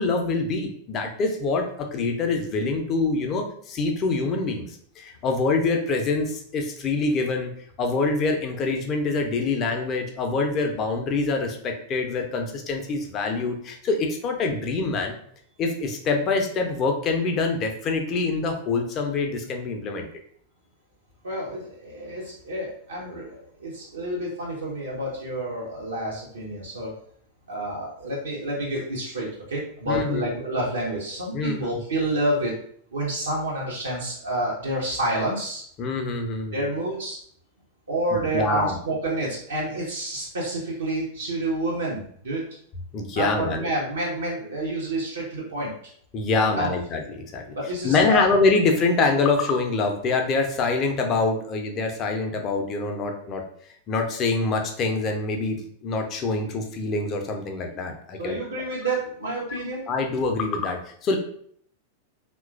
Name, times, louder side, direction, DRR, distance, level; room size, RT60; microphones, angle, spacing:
voice 1, 0.0-7.5 7.8-15.2 15.6-20.1 29.9-30.2 31.3-31.8 35.8-36.6 38.1-38.8 42.9-43.7 46.1-53.4 53.9-58.4 59.9-61.2, left 3 dB, 30° left, 3 dB, 0.5 m, -25 dB
voice 2, 21.2-26.9 27.5-32.6 32.9-35.6 36.5-37.2 37.9-42.5 43.1-45.7 46.6-46.7 47.5-48.3 58.2-59.8, right 1 dB, 70° right, -5 dB, 0.6 m, -29 dB
2.9 x 2.2 x 2.4 m, 0.62 s
figure-of-eight pair, 90°, 0 cm